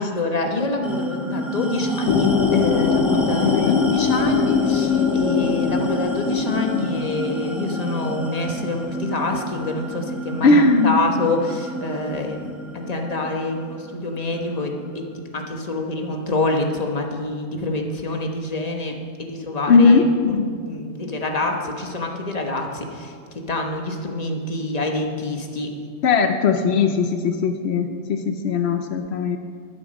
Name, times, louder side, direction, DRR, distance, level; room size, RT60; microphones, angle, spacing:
voice 1, 0.0-15.0 15.3-20.4 20.6-25.7, left 2 dB, 25° left, 2 dB, 1.0 m, -26 dB
sound 1, 0.8-15.6, right 1 dB, ahead, 0.9 m, -30 dB
sound 2, 2.1-7.3, left 7 dB, 65° left, 1.0 m, -22 dB
voice 2, 3.4-3.8 10.4-11.0 19.7-20.6 26.0-29.4, left 4 dB, 85° left, 6 dB, 0.5 m, -18 dB
12.0 x 10.5 x 5.3 m, 2.1 s
omnidirectional pair, 2.0 m